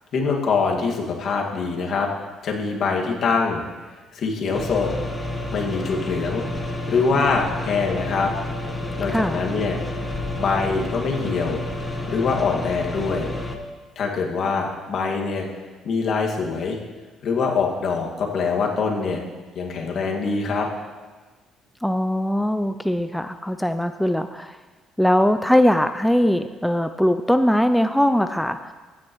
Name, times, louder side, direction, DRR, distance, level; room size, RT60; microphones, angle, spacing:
voice 1, 0.1-2.1 2.4-3.6 4.1-4.9 5.5-6.4 6.9-8.3 9.0-9.8 10.4-13.3 14.0-15.4 15.8-16.8 17.2-19.2 19.6-20.7, left 4 dB, 55° left, 0 dB, 1.9 m, -24 dB
sound 1, 4.5-13.6, left 1 dB, 20° left, 1.1 m, -30 dB
voice 2, 9.1-9.4 21.8-24.6 25.0-28.7, equal, ahead, 9 dB, 0.3 m, -21 dB
15.0 x 9.6 x 3.1 m, 1.3 s
cardioid pair, 105°, 0 cm